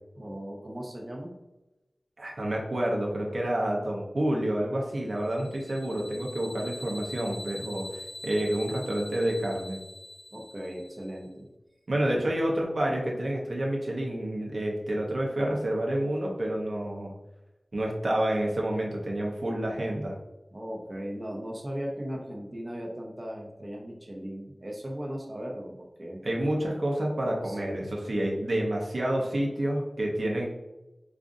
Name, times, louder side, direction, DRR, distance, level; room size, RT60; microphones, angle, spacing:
voice 1, 0.1-1.4 10.3-11.5 12.1-12.3 20.5-26.3 27.4-27.9, equal, 35° right, -1 dB, 0.7 m, -37 dB
voice 2, 2.2-9.8 11.9-17.1 17.7-20.1 26.2-30.5, right 1 dB, 70° right, -2 dB, 0.8 m, -29 dB
sound 1, 5.2-11.2, left 2 dB, 80° left, 0.3 m, -43 dB
5.0 x 2.4 x 2.5 m, 1.0 s
wide cardioid pair, 50°, 0 cm